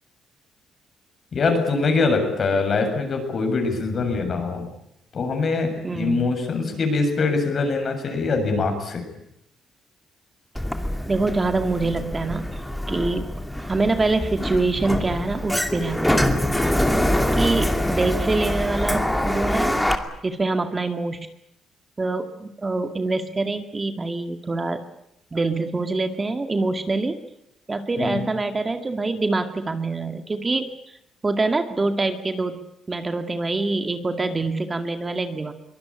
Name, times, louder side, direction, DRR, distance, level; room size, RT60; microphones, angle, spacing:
voice 1, 1.3-4.7 5.1-9.0 28.0-28.2, left 4 dB, 50° left, 5 dB, 7.2 m, -23 dB
voice 2, 5.8-6.3 11.1-13.3 13.6-16.7 17.3-19.9 20.2-21.2 22.0-24.8 25.3-27.2 27.7-30.7 31.2-32.6 32.9-35.5, right 3 dB, 25° right, 7 dB, 2.1 m, -25 dB
Sliding door, 10.6-20.0, left 1 dB, 5° left, 2.6 m, -24 dB
23.5 x 19.0 x 9.9 m, 0.81 s
cardioid pair, 90°, 0 cm